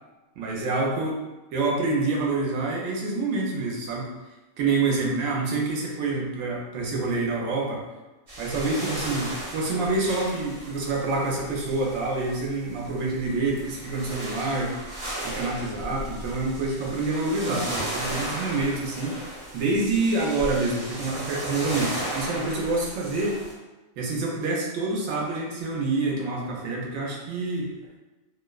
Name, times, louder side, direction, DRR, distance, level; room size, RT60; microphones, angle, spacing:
voice 1, 0.4-1.2 1.5-4.1 4.6-7.8 8.4-14.8 15.2-23.4 24.0-27.7, right 3 dB, 75° right, -1 dB, 1.0 m, -27 dB
sound 1, 8.3-23.5, right 1 dB, 50° right, 1.0 m, -35 dB
2.7 x 2.1 x 2.2 m, 1.1 s
omnidirectional pair, 1.4 m